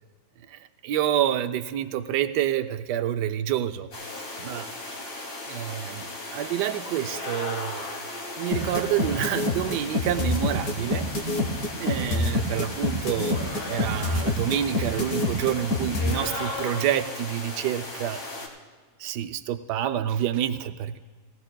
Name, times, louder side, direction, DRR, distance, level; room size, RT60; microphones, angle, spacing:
voice 1, 0.5-3.9 4.4-4.7 5.5-7.9 8.4-11.1 11.8-13.4 13.7-18.2 19.0-21.0, right 11 dB, 75° right, 9 dB, 1.2 m, -28 dB
sound 1, 3.9-18.5, left 2 dB, 85° left, 2.6 m, -36 dB
sound 2, 8.5-16.1, left 2 dB, 60° left, 1.6 m, -26 dB
18.5 x 17.5 x 2.2 m, 1.5 s
omnidirectional pair, 1.8 m